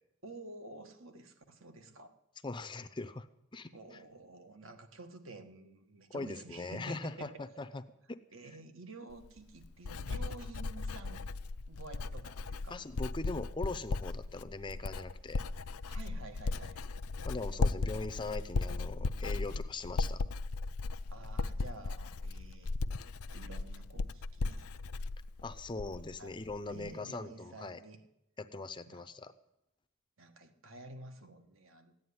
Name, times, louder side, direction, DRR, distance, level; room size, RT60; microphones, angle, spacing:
voice 1, 0.2-2.1 3.7-7.3 8.3-11.2 11.7-12.8 15.9-16.9 21.1-22.7 23.3-24.7 26.2-26.4 26.7-28.0 28.8-29.1 30.2-32.0, right 2 dB, 65° right, 7 dB, 1.6 m, -50 dB
voice 2, 2.4-3.3 3.5-3.7 6.1-7.8 8.1-8.2 12.7-15.4 17.2-20.2 25.4-27.8 28.4-29.3, left 3 dB, 20° left, 11 dB, 0.5 m, -41 dB
Writing, 9.1-26.2 26.5-26.9, left 3 dB, 85° left, 0.5 m, -37 dB
15.0 x 9.5 x 9.7 m, 0.86 s
head